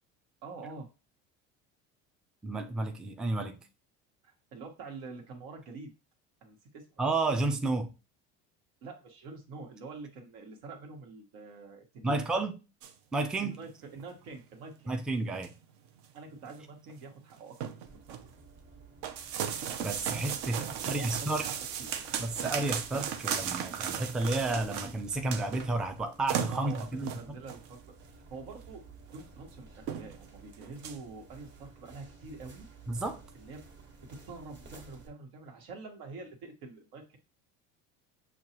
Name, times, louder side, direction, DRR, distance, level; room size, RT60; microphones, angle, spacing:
voice 1, 0.4-0.9 4.2-5.9 6.4-6.8 8.8-12.2 13.4-14.9 16.1-18.3 20.6-21.5 21.8-22.3 26.5-28.8 29.1-32.6 33.3-33.6 34.3-37.2, right 3 dB, 85° right, 1.4 m, -46 dB
voice 2, 2.4-3.6 7.0-7.9 12.0-12.6 13.1-13.6 14.9-15.5 19.8-21.5 22.2-27.1 32.9-33.2, right 2 dB, ahead, 0.3 m, -31 dB
sound 1, 12.8-12.9 13.5-13.6 13.9-14.0 14.6-14.7 15.1-15.6 16.0-16.2 16.4-16.5 16.9-17.0 17.3-18.3 19.0-25.7 26.0-26.1 26.3-27.7 28.5-28.6 29.1-29.2 29.5-29.6 29.9-30.2 30.5-31.0, right 8 dB, 65° right, 0.7 m, -36 dB
sound 2, 17.8-35.1, right 4 dB, 35° right, 1.2 m, -54 dB
6.3 x 2.3 x 2.9 m
supercardioid pair, 110°, 32 cm